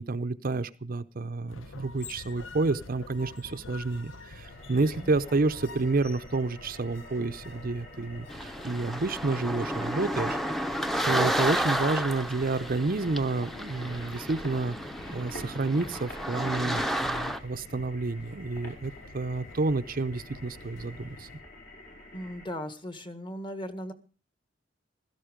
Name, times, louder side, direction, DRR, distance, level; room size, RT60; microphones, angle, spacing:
voice 1, 0.0-10.4 11.1-14.8 15.1-21.3, right 3 dB, 50° right, 11 dB, 0.7 m, -29 dB
sound 1, 1.5-21.4, left 3 dB, 80° left, 1.0 m, -48 dB
sound 2, 4.4-22.4, left 1 dB, 60° left, 5.6 m, -47 dB
voice 2, 5.0-5.4 21.9-23.9, equal, 25° left, 10 dB, 1.6 m, -38 dB
sound 3, 8.3-17.4, equal, ahead, 0.8 m, -32 dB
16.5 x 13.5 x 5.1 m, 0.35 s
head